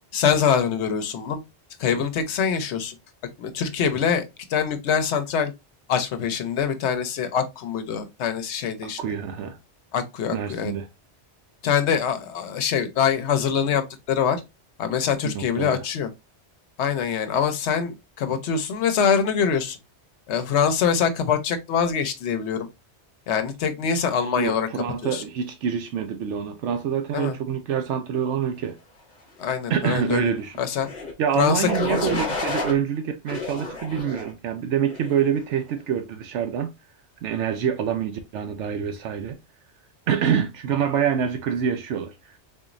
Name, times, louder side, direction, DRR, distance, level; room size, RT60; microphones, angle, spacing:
voice 1, 0.1-1.4 1.8-2.9 3.4-4.2 4.5-5.5 5.9-9.0 9.9-10.7 11.6-14.4 14.8-16.1 16.8-19.8 20.3-22.7 23.3-24.7 25.0-25.2 27.1-27.3 29.4-30.3 30.6-30.9 31.4-31.7 32.0-32.2, left 7 dB, 75° left, 1.0 m, -24 dB
voice 2, 8.8-9.6 10.3-10.9 15.2-15.8 24.4-28.8 29.7-30.6 31.2-36.7 37.2-39.4 40.1-42.4, right 8 dB, 80° right, 0.9 m, -26 dB
sound 1, 30.7-31.1 31.7-32.7 33.3-34.3 34.9-35.3, left 3 dB, 40° left, 0.9 m, -30 dB
4.1 x 3.0 x 2.5 m
omnidirectional pair, 1.2 m